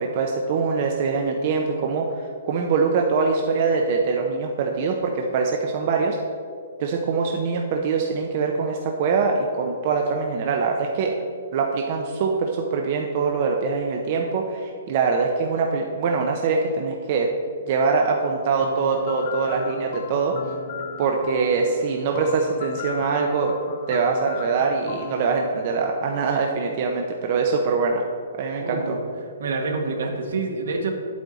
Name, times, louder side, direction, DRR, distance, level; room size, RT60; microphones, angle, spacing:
voice 1, 0.0-6.2 6.8-11.1 11.5-17.3 17.7-20.3 21.0-23.5 23.9-28.0 28.4-29.0, right 4 dB, 35° right, 1 dB, 0.6 m, -23 dB
sound 1, 18.6-26.5, left 7 dB, 40° left, 0.6 m, -37 dB
voice 2, 28.6-29.0 29.4-30.9, right 3 dB, 70° right, 3 dB, 1.3 m, -27 dB
8.9 x 8.2 x 4.0 m, 2.3 s
hypercardioid pair, 170°, 0 cm